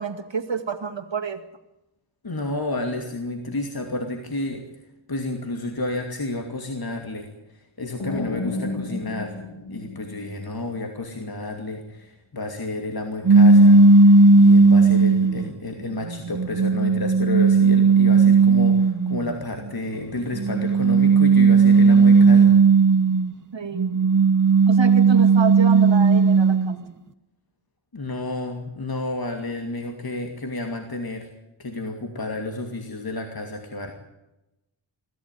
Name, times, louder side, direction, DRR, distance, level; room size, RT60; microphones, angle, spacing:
voice 1, 0.0-1.4 23.5-24.0 24.7-26.9, right 5 dB, 65° right, 6 dB, 2.2 m, -29 dB
voice 2, 2.2-4.7 5.1-9.4 9.7-22.6 27.9-31.3 31.6-33.9, left 2 dB, 50° left, 3 dB, 2.7 m, -31 dB
sound 1, 8.0-10.8, left 2 dB, 80° left, 2.7 m, -32 dB
sound 2, 13.3-15.4 16.1-19.2 20.3-23.3 23.8-26.7, right 4 dB, 40° right, 1.0 m, -15 dB
23.5 x 15.0 x 9.2 m, 0.94 s
wide cardioid pair, 70°, 47 cm